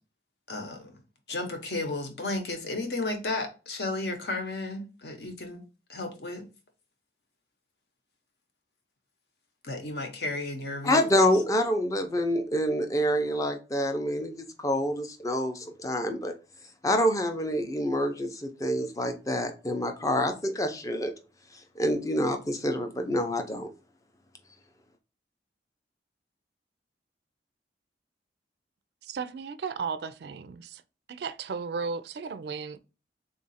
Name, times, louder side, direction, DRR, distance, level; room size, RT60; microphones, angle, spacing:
voice 1, 0.5-1.0 1.3-5.6 5.9-6.4 9.6-11.3, left 2 dB, 65° left, 0.9 m, -33 dB
voice 2, 10.8-16.3 16.8-21.1 21.8-23.7, equal, 20° left, 0.5 m, -27 dB
voice 3, 29.0-30.8 31.1-32.8, right 5 dB, 65° right, 0.3 m, -35 dB
3.7 x 2.4 x 4.0 m
head